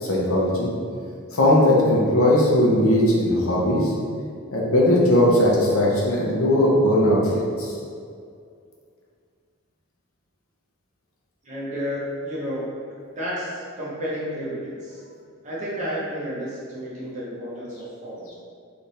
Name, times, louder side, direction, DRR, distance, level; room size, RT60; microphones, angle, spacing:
voice 1, 0.0-0.7 1.3-3.9 4.5-7.7, left 1 dB, 85° left, -4 dB, 1.0 m, -19 dB
voice 2, 11.4-12.7 13.1-15.0 15.4-18.3, equal, 35° right, -7 dB, 1.1 m, -31 dB
3.5 x 3.4 x 4.1 m, 2.3 s
head